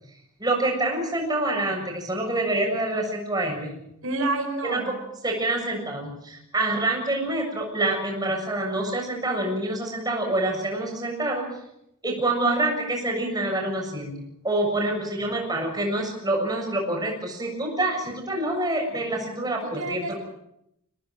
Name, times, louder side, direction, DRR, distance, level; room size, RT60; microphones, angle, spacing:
voice 1, 0.4-3.7 4.6-4.9 5.2-11.5 12.0-14.1 14.4-20.2, right 2 dB, 20° right, 1 dB, 7.1 m, -26 dB
voice 2, 4.0-5.0 19.6-20.1, right 2 dB, 75° right, 4 dB, 5.0 m, -29 dB
25.5 x 18.5 x 7.6 m, 0.78 s
head